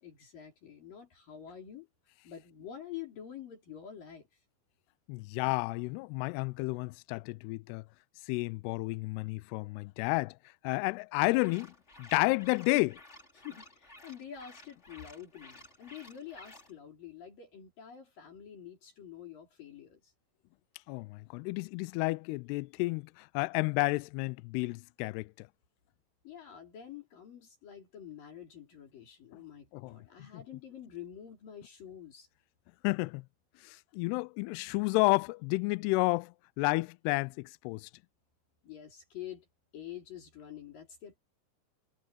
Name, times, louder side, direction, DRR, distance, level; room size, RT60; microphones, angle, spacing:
voice 1, 0.0-1.9 2.2-4.3 13.3-20.1 26.2-32.3 38.6-39.5 39.7-41.2, left 9 dB, 55° left, 5.0 m, -47 dB
voice 2, 5.1-7.8 8.3-10.4 10.6-11.7 12.0-13.0 20.9-25.5 29.7-30.0 30.3-30.4 32.8-33.3 33.6-37.9, left 25 dB, 85° left, 2.4 m, -31 dB
sound 1, 11.3-16.7, left 2 dB, 15° left, 3.6 m, -54 dB
omnidirectional pair, 5.1 m